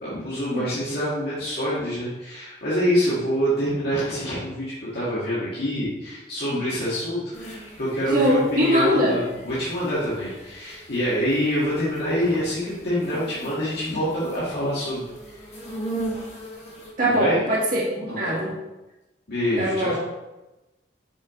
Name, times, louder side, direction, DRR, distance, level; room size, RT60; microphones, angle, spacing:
voice 1, 0.0-15.0 17.0-17.4 18.1-18.5 19.3-19.9, equal, 60° left, -10 dB, 1.9 m, -26 dB
sound 1, 7.3-16.9, right 2 dB, 35° left, 1.6 m, -39 dB
voice 2, 8.1-9.2 17.0-18.5 19.6-19.9, equal, 50° right, -5 dB, 2.0 m, -22 dB
6.3 x 4.7 x 3.7 m, 1.0 s
head